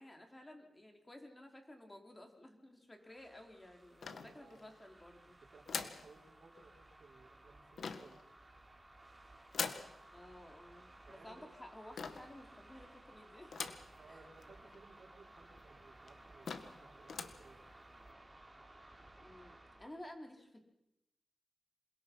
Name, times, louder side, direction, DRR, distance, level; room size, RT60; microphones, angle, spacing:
voice 1, 0.0-5.4 10.1-13.6 14.1-14.2 19.2-20.6, left 1 dB, 20° left, 3 dB, 4.6 m, -54 dB
sound 1, 3.0-20.0, right 1 dB, 20° right, 4.3 m, -59 dB
sound 2, 4.0-4.8 5.7-6.1 7.8-8.2 9.5-9.9 12.0-12.4 13.5-13.9 14.4-14.5 14.7-14.8 15.6-15.7 16.1-16.2 16.5-16.8 17.1-17.4, left 5 dB, 85° left, 1.7 m, -42 dB
voice 2, 4.1-4.7 5.2-8.3 11.1-11.4 14.0-17.7, right 3 dB, 65° right, 0 dB, 5.5 m, -61 dB
27.5 x 22.0 x 5.7 m, 0.87 s
cardioid pair, 70°, 0 cm